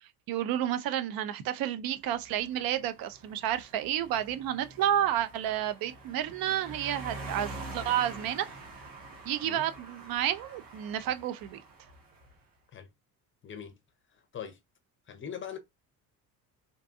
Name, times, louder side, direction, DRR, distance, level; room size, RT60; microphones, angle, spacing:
voice 1, 0.0-8.5 9.3-11.6, right 11 dB, 45° right, 0.5 m, -31 dB
sound 1, 2.1-12.4, right 2 dB, 85° right, 0.9 m, -46 dB
voice 2, 13.4-13.8 14.1-14.6 15.1-15.6, left 8 dB, 25° left, 0.7 m, -41 dB
2.6 x 2.2 x 2.5 m
hypercardioid pair, 55°, 49 cm